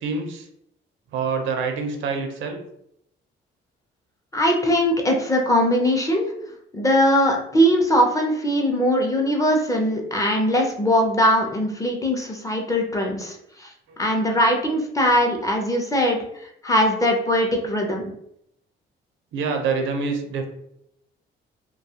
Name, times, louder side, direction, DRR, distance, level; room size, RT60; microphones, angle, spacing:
voice 1, 0.0-0.5 1.1-2.6 13.9-14.0 19.3-20.5, right 5 dB, 80° right, 5 dB, 0.6 m, -26 dB
voice 2, 4.3-6.3 6.7-13.7 14.0-16.2 16.6-18.0, equal, 15° left, 1 dB, 0.5 m, -21 dB
2.3 x 2.3 x 2.8 m, 0.75 s
cardioid pair, 90°, 20 cm